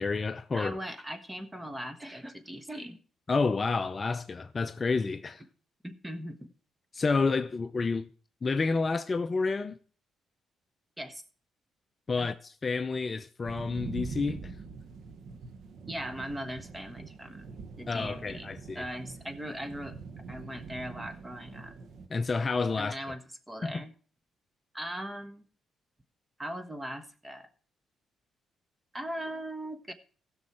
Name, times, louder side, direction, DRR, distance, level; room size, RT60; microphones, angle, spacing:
voice 1, 0.0-0.8 3.3-5.4 6.9-8.1 8.4-9.8 12.1-14.5 17.9-18.9 22.1-22.9 23.6-23.8, left 4 dB, 30° left, 0.6 m, -29 dB
voice 2, 0.5-3.0 5.8-6.5 11.0-11.2 12.2-12.3 15.9-18.5 18.7-20.0 20.3-21.7 22.8-23.9 24.7-25.4 26.4-27.5 28.9-29.9, equal, 10° right, 1.3 m, -39 dB
sound 1, 13.4-22.1, right 4 dB, 65° right, 1.3 m, -44 dB
16.0 x 6.3 x 4.4 m
cardioid pair, 90°, 0 cm